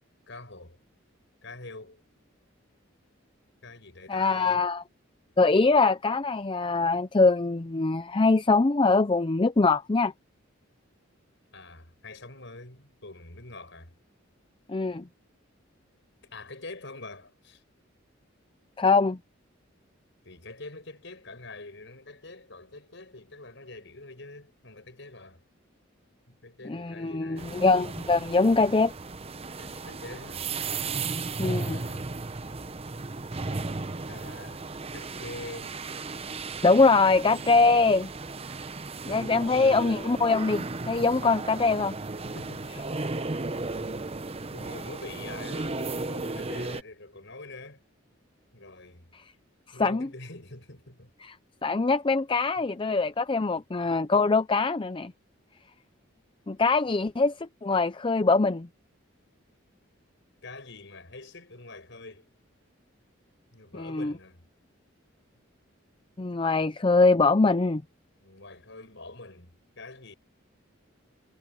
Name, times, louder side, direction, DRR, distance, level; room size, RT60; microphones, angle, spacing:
voice 1, 0.3-0.8 1.4-2.0 3.6-4.6 11.5-13.9 16.3-17.6 20.2-25.4 26.3-27.6 29.6-30.5 31.6-32.2 34.1-34.6 34.9-35.8 42.2-44.2 44.5-47.8 48.5-49.1 49.7-51.1 52.6-52.7 60.4-62.3 63.5-64.4 68.2-70.1, left 2 dB, 60° left, 7.4 m, -45 dB
voice 2, 4.1-4.8 5.4-10.1 14.7-15.1 18.8-19.2 26.6-28.9 31.4-31.8 36.6-38.1 39.1-42.0 49.8-50.1 51.2-51.3 51.6-55.1 56.5-58.7 63.8-64.1 66.2-67.8, left 3 dB, 25° left, 0.5 m, -23 dB
sound 1, 27.4-46.8, right 3 dB, 30° right, 0.8 m, -35 dB
head